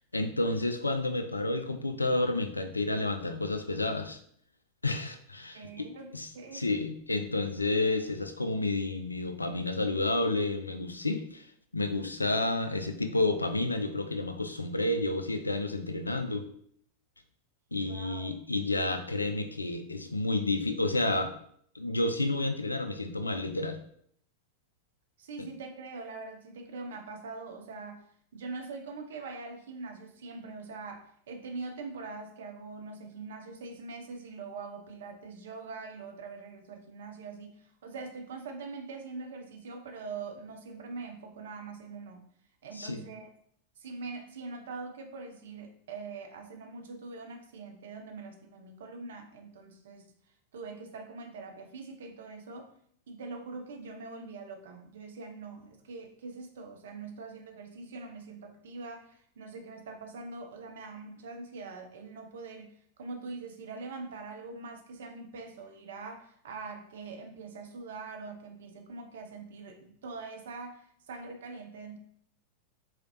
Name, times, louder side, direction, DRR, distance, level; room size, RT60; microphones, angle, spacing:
voice 1, 0.1-4.2 4.8-11.5 11.7-16.4 17.7-21.3 21.7-23.8 25.4-25.5 42.7-43.0, left 2 dB, 80° left, 7 dB, 0.4 m, -30 dB
voice 2, 5.5-6.6 17.8-18.4 25.2-28.0 28.3-42.2 42.6-43.3 43.8-50.1 50.5-52.7 53.1-72.0, right 4 dB, 60° right, 4 dB, 0.6 m, -43 dB
3.9 x 3.2 x 3.0 m, 0.64 s
figure-of-eight pair, 90°, 0 cm